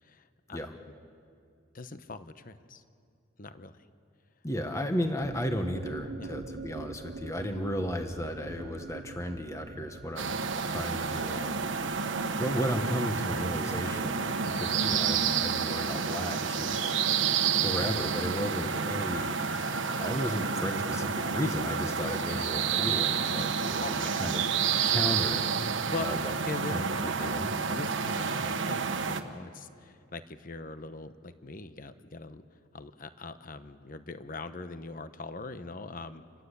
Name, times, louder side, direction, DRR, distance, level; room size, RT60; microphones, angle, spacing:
voice 1, 0.0-0.6 0.9-1.0 1.7-2.8 3.4-3.8 6.2-6.3 23.6-24.1 25.9-26.1 26.5-27.3 27.7-36.2, left 3 dB, 45° left, 11 dB, 0.9 m, -42 dB
voice 2, 4.4-10.3 10.6-11.7 12.0-12.1 12.4-17.0 17.6-19.4 20.0-24.4 24.8-25.5 26.0-26.3 26.7-27.5, equal, 15° left, 5 dB, 1.3 m, -34 dB
sound 1, 5.2-15.0, right 3 dB, 55° right, 0.6 m, -45 dB
sound 2, 10.2-29.2, right 6 dB, 75° right, 1.4 m, -29 dB
29.0 x 21.5 x 8.3 m, 2.5 s
head